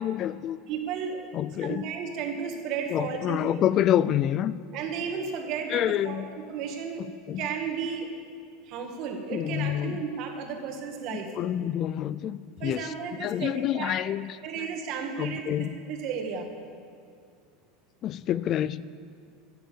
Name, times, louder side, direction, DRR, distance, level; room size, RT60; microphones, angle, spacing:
voice 1, 0.0-0.6 1.3-1.9 2.9-4.5 5.7-6.3 7.3-7.4 9.3-10.0 11.1-12.9 13.2-14.7 15.2-15.8 18.0-18.8, left 11 dB, 40° left, 18 dB, 0.3 m, -27 dB
voice 2, 0.7-1.3 1.6-3.4 4.7-7.1 7.4-8.1 8.7-11.3 12.6-14.0 14.4-15.4 15.8-16.5, right 6 dB, 50° right, 3 dB, 1.7 m, -33 dB
13.5 x 7.8 x 6.8 m, 2.3 s
supercardioid pair, 135°, 0 cm